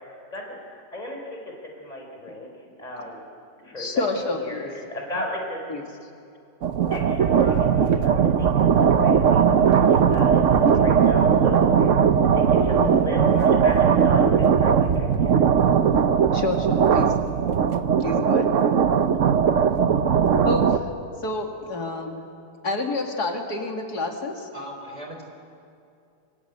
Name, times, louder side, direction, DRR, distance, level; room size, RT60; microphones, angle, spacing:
voice 1, 0.0-2.5 2.8-3.2 3.6-5.6 6.9-12.0 12.3-15.4, left 1 dB, 20° left, 0 dB, 4.6 m, -35 dB
voice 2, 3.8-4.7 5.7-5.8 12.5-13.0 16.3-17.1 18.0-18.5 20.0-20.2 20.4-20.9 21.2-22.2 22.6-24.5, left 2 dB, 60° left, 3 dB, 2.9 m, -28 dB
sound 1, 6.6-20.8, right 7 dB, 55° right, 1.1 m, -19 dB
voice 3, 24.5-25.2, equal, 20° right, 1 dB, 3.9 m, -37 dB
27.5 x 24.5 x 8.1 m, 2.5 s
omnidirectional pair, 1.9 m